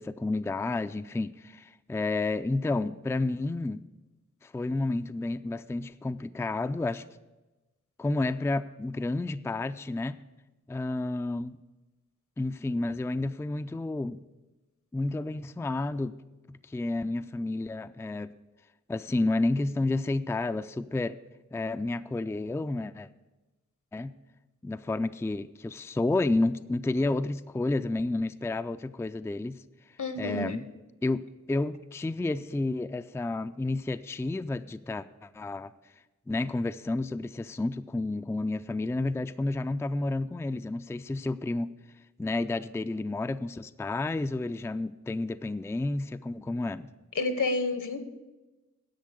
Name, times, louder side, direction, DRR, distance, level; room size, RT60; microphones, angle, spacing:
voice 1, 0.0-3.8 4.4-7.0 8.0-10.2 10.7-11.6 12.4-14.2 14.9-16.2 16.5-18.3 18.9-21.2 21.5-23.1 23.9-24.2 24.6-29.6 30.2-30.7 31.0-35.7 36.3-41.7 42.2-46.9, left 2 dB, 10° left, 11 dB, 0.3 m, -30 dB
voice 2, 30.0-30.6 47.1-48.0, left 3 dB, 75° left, 9 dB, 1.2 m, -29 dB
10.5 x 7.5 x 6.6 m, 1.1 s
cardioid pair, 40°, 31 cm